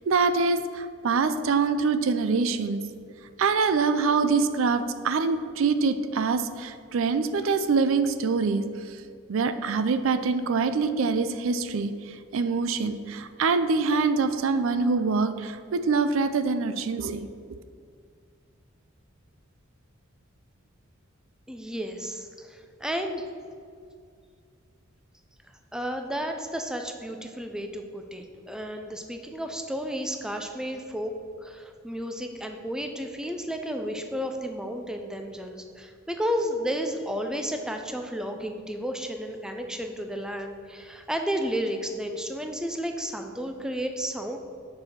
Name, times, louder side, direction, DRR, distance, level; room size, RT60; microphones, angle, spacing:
voice 1, 0.1-2.8 3.4-8.6 9.3-11.9 12.3-17.3, right 4 dB, 70° right, 11 dB, 0.4 m, -24 dB
voice 2, 21.5-23.3 25.7-31.1 31.4-44.4, equal, 5° right, 5 dB, 0.5 m, -32 dB
6.4 x 4.8 x 5.8 m, 2.2 s
head